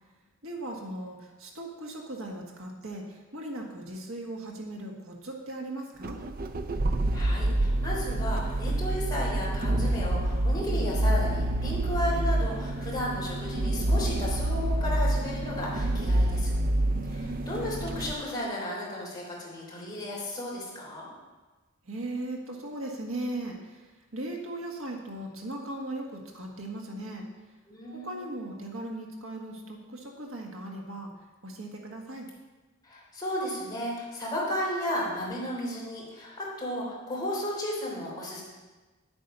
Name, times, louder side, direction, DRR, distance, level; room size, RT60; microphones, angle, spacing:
voice 1, 0.4-6.2 16.9-17.7 21.8-27.2 27.9-31.1 31.4-32.3, right 1 dB, 70° right, 0 dB, 1.6 m, -38 dB
sound 1, 6.0-18.1, right 1 dB, 40° right, 0.5 m, -27 dB
voice 2, 7.1-16.5 17.1-21.1 27.7-28.3 32.8-38.4, left 1 dB, 20° left, -5 dB, 3.5 m, -34 dB
10.5 x 8.7 x 5.5 m, 1.2 s
head